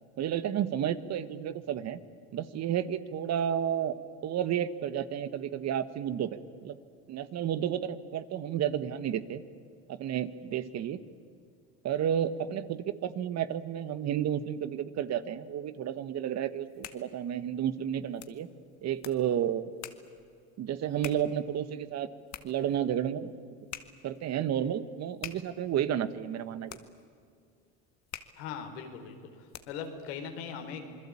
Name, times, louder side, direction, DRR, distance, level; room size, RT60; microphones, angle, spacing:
voice 1, 0.2-2.0 2.3-4.0 4.2-6.8 7.1-9.4 9.9-11.0 11.8-18.5 18.8-19.7 20.6-22.1 22.4-23.3 24.0-26.8, right 10 dB, 55° right, 13 dB, 1.6 m, -31 dB
sound 1, 16.5-30.0, left 11 dB, 60° left, 2.0 m, -49 dB
voice 2, 28.4-30.8, left 7 dB, 85° left, 5 dB, 4.2 m, -40 dB
27.5 x 21.5 x 8.7 m, 2.2 s
supercardioid pair, 80°, 32 cm